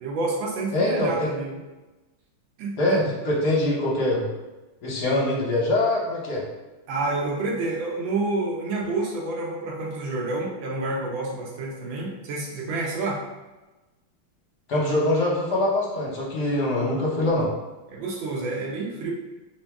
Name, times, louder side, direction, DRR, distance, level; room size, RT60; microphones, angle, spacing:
voice 1, 0.0-1.6 2.6-3.1 6.9-13.2 17.9-19.1, right 2 dB, 75° right, -2 dB, 1.5 m, -29 dB
voice 2, 0.7-1.3 2.8-4.2 4.8-6.4 14.7-17.5, left 1 dB, 60° left, -4 dB, 1.3 m, -23 dB
3.5 x 2.8 x 3.4 m, 1.1 s
omnidirectional pair, 2.2 m